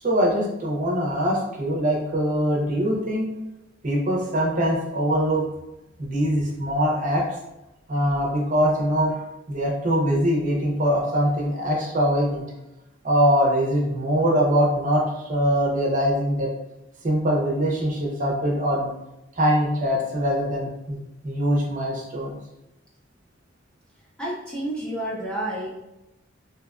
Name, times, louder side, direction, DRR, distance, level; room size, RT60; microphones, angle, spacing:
voice 1, 0.0-3.3 3.8-5.4 6.0-7.2 7.9-9.2 9.5-12.4 13.0-15.0 15.3-16.5 17.0-18.9 19.4-21.0 21.2-22.4, equal, 40° right, -2 dB, 0.6 m, -22 dB
voice 2, 24.2-25.7, right 1 dB, 5° left, -5 dB, 0.3 m, -30 dB
2.7 x 2.3 x 2.3 m, 0.93 s
head